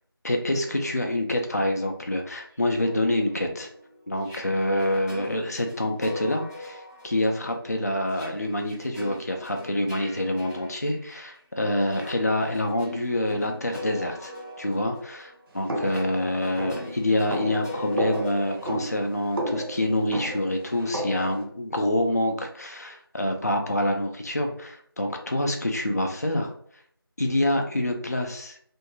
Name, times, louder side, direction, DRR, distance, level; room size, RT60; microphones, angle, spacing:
voice 1, 0.2-3.7 4.1-14.3 14.6-15.3 15.5-26.5 27.2-28.6, left 1 dB, 40° left, 3 dB, 0.4 m, -26 dB
sound 1, 2.5-11.4 11.8-19.6, left 1 dB, 10° left, 0.7 m, -42 dB
sound 2, 15.7-21.4, right 1 dB, 65° right, 0.8 m, -32 dB
2.5 x 2.3 x 2.9 m, 0.63 s
figure-of-eight pair, 175°, 13 cm